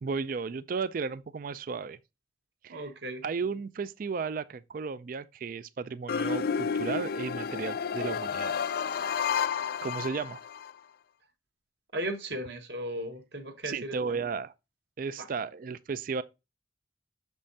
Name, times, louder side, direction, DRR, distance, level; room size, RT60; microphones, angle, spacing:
voice 1, 0.0-2.0 2.6-2.9 3.2-8.6 9.0-9.4 9.8-10.4 13.7-14.5 15.0-16.2, right 5 dB, 50° right, 0.4 m, -34 dB
voice 2, 2.7-3.2 11.9-14.2 15.2-15.3, right 1 dB, 65° right, 1.4 m, -36 dB
sound 1, 6.1-10.7, left 6 dB, 55° left, 0.3 m, -31 dB
6.3 x 5.3 x 2.7 m
head